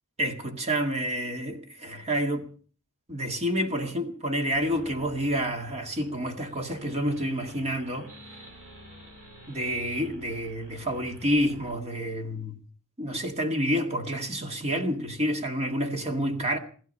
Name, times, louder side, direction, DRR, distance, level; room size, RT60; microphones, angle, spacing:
voice 1, 0.2-2.5 3.1-8.1 9.5-12.6 13.0-16.6, equal, 30° right, 1.9 m, -29 dB
sound 1, 4.6-11.8, equal, 65° right, 4.9 m, -50 dB
16.0 x 15.5 x 5.5 m
head